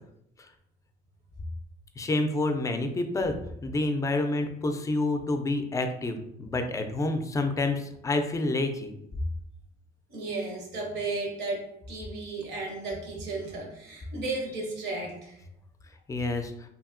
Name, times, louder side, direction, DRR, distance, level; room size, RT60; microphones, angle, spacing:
voice 1, 2.0-3.4 3.6-8.9 16.1-16.5, left 2 dB, 20° left, 6 dB, 0.3 m, -28 dB
voice 2, 10.1-15.4, right 3 dB, 90° right, 1 dB, 0.8 m, -34 dB
2.7 x 2.7 x 2.5 m, 0.77 s
cardioid pair, 110°, 17 cm